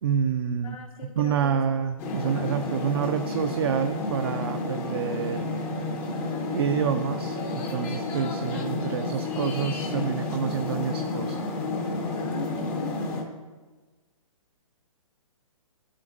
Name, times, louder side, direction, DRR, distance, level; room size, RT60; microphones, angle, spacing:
voice 1, 0.0-0.8 1.2-5.5 6.5-11.4, right 7 dB, 45° right, 7 dB, 0.4 m, -28 dB
voice 2, 0.6-1.6 12.1-13.2, left 3 dB, 75° left, 1 dB, 0.8 m, -39 dB
sound 1, 2.0-13.2, left 2 dB, 15° left, 0.5 m, -31 dB
12.0 x 7.3 x 2.6 m, 1.3 s
hypercardioid pair, 165°, 18 cm